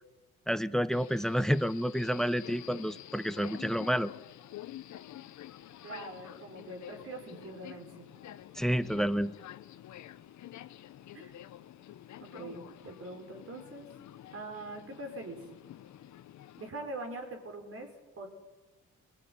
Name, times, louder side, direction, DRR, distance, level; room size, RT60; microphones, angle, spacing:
voice 1, 0.5-4.1 8.6-9.3, equal, ahead, 17 dB, 0.8 m, -29 dB
Subway metro underground, 0.9-16.7, left 12 dB, 70° left, 1.0 m, -49 dB
voice 2, 5.8-8.1 11.1-11.3 12.2-13.9 14.3-15.4 16.6-18.3, right 2 dB, 50° right, 4 dB, 5.7 m, -43 dB
21.5 x 15.5 x 9.8 m, 1.2 s
cardioid pair, 90°, 30 cm